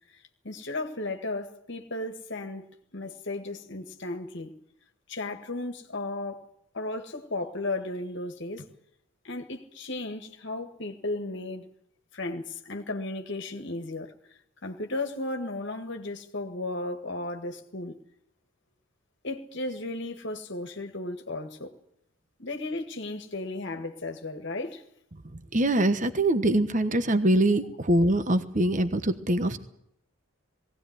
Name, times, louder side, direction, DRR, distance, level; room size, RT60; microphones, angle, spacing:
voice 1, 0.1-4.5 5.1-6.5 6.7-8.7 9.2-11.7 12.1-14.1 14.6-18.0 19.2-21.7 22.4-24.8, left 2 dB, 55° left, 1.8 m, -35 dB
voice 2, 25.3-29.6, right 1 dB, 35° right, 1.2 m, -24 dB
20.0 x 17.0 x 9.5 m
head